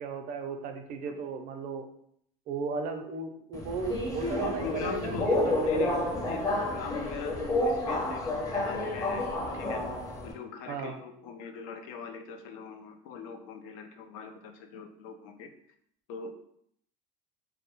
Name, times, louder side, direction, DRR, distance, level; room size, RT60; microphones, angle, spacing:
voice 1, 0.0-1.9 2.5-6.1 10.7-11.0, right 5 dB, 50° right, 6 dB, 0.4 m, -36 dB
Subway metro underground, 3.5-10.3, left 1 dB, 20° left, 0.6 m, -30 dB
voice 2, 4.4-5.3 5.7-6.0 6.3-9.3 9.5-9.8 10.2-15.5 16.1-16.4, left 5 dB, 80° left, 6 dB, 0.4 m, -40 dB
2.2 x 2.0 x 2.9 m, 0.68 s
supercardioid pair, 100°, 18 cm